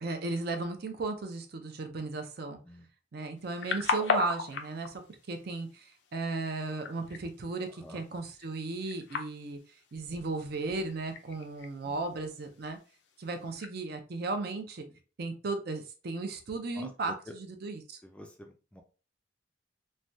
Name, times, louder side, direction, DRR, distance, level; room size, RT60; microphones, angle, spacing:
voice 1, 0.0-2.6 3.1-5.0 5.3-5.8 6.1-9.6 9.9-12.8 13.2-14.9 15.2-18.0, right 3 dB, 60° right, 6 dB, 0.5 m, -35 dB
sound 1, 3.4-13.7, left 5 dB, 70° left, 0.4 m, -39 dB
voice 2, 7.7-8.0 11.8-12.0 14.9-15.0 16.7-16.9 17.3-17.4 18.0-18.8, left 1 dB, 5° left, 3 dB, 0.3 m, -48 dB
3.2 x 2.2 x 2.6 m, 0.35 s
head